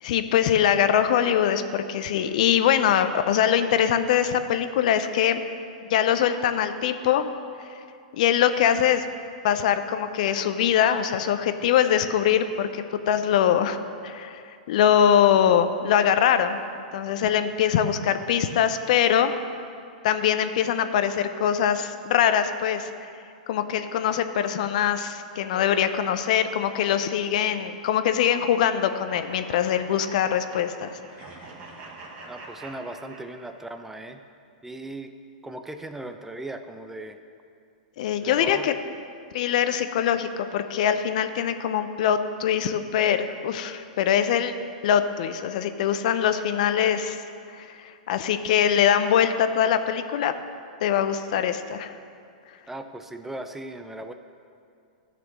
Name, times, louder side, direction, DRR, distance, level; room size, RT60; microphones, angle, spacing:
voice 1, 0.0-5.4 5.9-7.3 8.1-9.0 9.4-14.4 14.7-16.6 16.9-19.3 20.0-23.1 23.5-30.9 38.0-38.7 39.3-44.5 44.8-47.2 47.5-50.4 50.8-51.9, left 9 dB, 60° left, 10 dB, 0.5 m, -23 dB
sound 1, 29.1-33.7, right 3 dB, 35° right, 1.4 m, -44 dB
voice 2, 32.3-34.2 34.6-35.1 35.4-37.2 38.2-38.7 51.3-51.5 52.7-54.1, right 2 dB, 5° right, 7 dB, 0.4 m, -37 dB
12.0 x 4.3 x 6.1 m, 2.4 s
hypercardioid pair, 120°, 5 cm